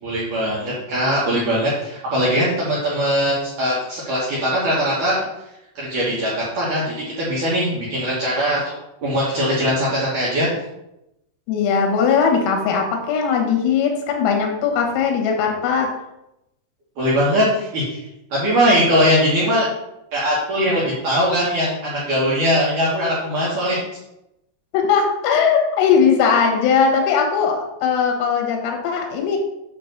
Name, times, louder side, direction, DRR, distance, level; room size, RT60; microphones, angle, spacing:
voice 1, 0.0-5.2 5.8-8.6 9.0-10.5 17.0-18.0 18.3-19.7 20.1-23.8, equal, 65° right, -6 dB, 2.0 m, -20 dB
voice 2, 11.5-15.9 24.7-29.4, left 6 dB, 90° left, 2 dB, 4.1 m, -19 dB
8.9 x 3.2 x 6.6 m, 0.87 s
omnidirectional pair, 5.8 m